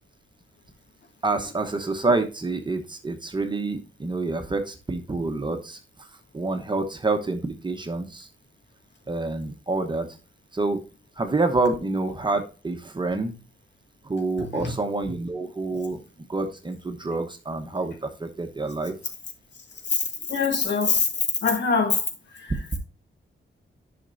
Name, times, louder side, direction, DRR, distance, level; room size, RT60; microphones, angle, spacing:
voice 1, 1.2-5.8 6.3-8.3 9.1-10.1 10.5-10.8 11.2-13.4 14.1-16.0 16.3-18.9, right 3 dB, 25° right, 1.0 m, -27 dB
voice 2, 20.3-21.1 21.4-22.0 22.4-22.5, left 4 dB, 60° left, 2.0 m, -23 dB
11.0 x 6.0 x 2.6 m
wide cardioid pair, 155°, 20 cm